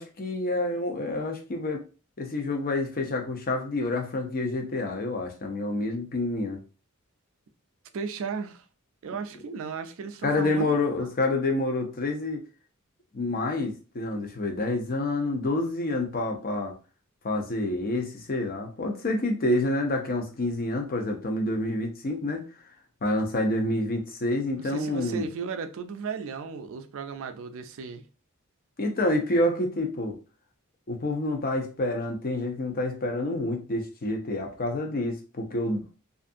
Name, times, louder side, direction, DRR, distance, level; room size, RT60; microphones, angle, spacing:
voice 1, 0.0-1.8 2.2-6.6 10.2-12.4 13.1-16.8 17.2-22.4 23.0-25.3 28.8-30.2 30.9-35.8, left 2 dB, 40° left, 0.6 m, -28 dB
voice 2, 7.9-8.6 9.0-11.1 24.6-28.1 29.3-29.4, right 5 dB, 65° right, 0.4 m, -35 dB
2.6 x 2.5 x 2.4 m
head